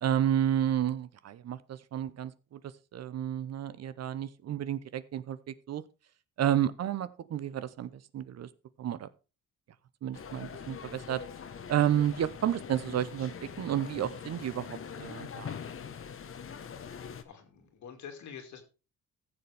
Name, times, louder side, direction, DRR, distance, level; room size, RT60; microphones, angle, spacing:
voice 1, 0.0-2.6 2.9-5.8 6.4-8.5 8.8-9.1 10.0-11.2 11.7-15.6, right 10 dB, 55° right, 15 dB, 0.8 m, -31 dB
sound 1, 10.1-17.2, left 7 dB, 45° left, 1.2 m, -43 dB
voice 2, 16.6-18.6, left 7 dB, 70° left, 5 dB, 2.4 m, -48 dB
14.5 x 7.0 x 3.4 m, 0.32 s
cardioid pair, 90°, 30 cm